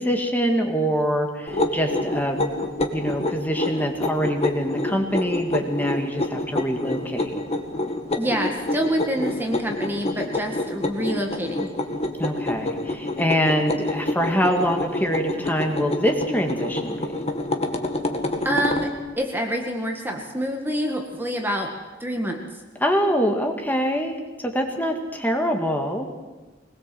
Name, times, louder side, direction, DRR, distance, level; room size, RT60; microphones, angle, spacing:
voice 1, 0.0-2.5 2.9-7.4 12.2-17.1 22.8-24.2 24.4-26.1, equal, 10° left, 3 dB, 2.0 m, -24 dB
sound 1, 1.5-18.9, left 2 dB, 35° left, 1.9 m, -28 dB
voice 2, 8.2-11.7 18.4-18.9 19.2-21.7 22.0-22.4, equal, 10° right, 2 dB, 1.8 m, -26 dB
22.0 x 20.5 x 7.8 m, 1.2 s
head